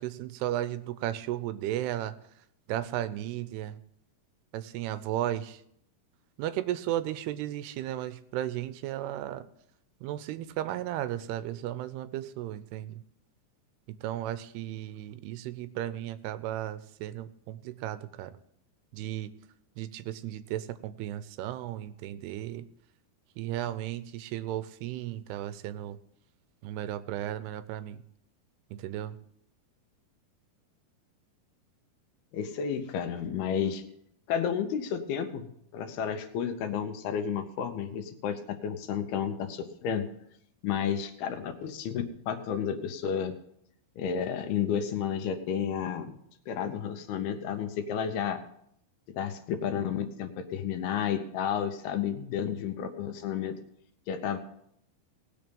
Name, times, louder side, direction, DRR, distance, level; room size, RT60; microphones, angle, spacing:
voice 1, 0.0-2.2 2.7-3.8 4.5-5.6 6.4-9.4 10.0-13.0 14.0-18.3 18.9-19.3 19.8-22.7 23.4-26.0 26.6-28.0 28.7-29.1, right 13 dB, 85° right, 13 dB, 2.7 m, -34 dB
voice 2, 32.3-33.8 34.3-40.1 40.6-43.3 44.0-46.1 46.5-48.4 49.1-53.6 54.1-54.4, left 8 dB, 75° left, 7 dB, 2.8 m, -31 dB
18.5 x 6.7 x 5.3 m, 0.73 s
omnidirectional pair, 4.6 m